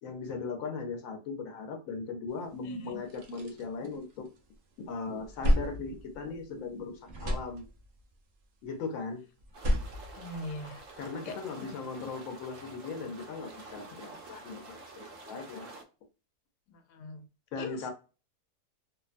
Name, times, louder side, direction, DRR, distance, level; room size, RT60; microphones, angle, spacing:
voice 1, 0.0-4.3 4.9-7.7 8.6-9.2 11.0-15.7 17.5-17.9, left 4 dB, 65° left, 4 dB, 1.0 m, -38 dB
sound 1, 2.4-2.5 2.9-4.6 4.9-6.8 7.0-8.1 9.4-11.0, equal, 90° right, 0.4 m, -32 dB
sound 2, 9.5-15.8, right 2 dB, 65° right, 0.8 m, -49 dB
voice 2, 10.2-10.8 11.2-11.7 16.9-17.2 17.6-17.9, left 2 dB, 90° left, 6 dB, 1.2 m, -41 dB
2.9 x 2.1 x 2.4 m, 0.32 s
omnidirectional pair, 1.7 m